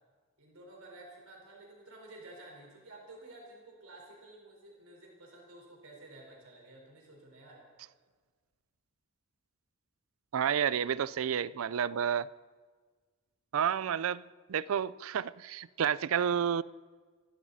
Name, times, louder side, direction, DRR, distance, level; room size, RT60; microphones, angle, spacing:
voice 1, 0.4-7.6, right 2 dB, 90° right, 4.5 m, -52 dB
voice 2, 10.3-12.3 13.5-14.2 14.5-16.6, right 8 dB, 70° right, 0.4 m, -30 dB
27.5 x 12.5 x 4.2 m
head